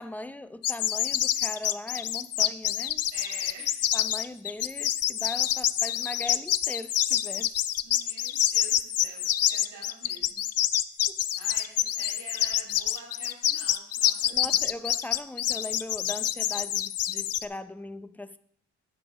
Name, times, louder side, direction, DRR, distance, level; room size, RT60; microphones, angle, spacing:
voice 1, 0.0-3.1 3.9-7.5 11.1-11.2 14.3-18.4, left 2 dB, 5° left, 0.5 m, -39 dB
sound 1, 0.6-17.4, left 11 dB, 55° left, 0.5 m, -27 dB
voice 2, 3.1-3.9 7.8-10.4 11.4-14.7, right 4 dB, 85° right, 4.5 m, -47 dB
10.5 x 5.3 x 6.0 m
cardioid pair, 90°, 30 cm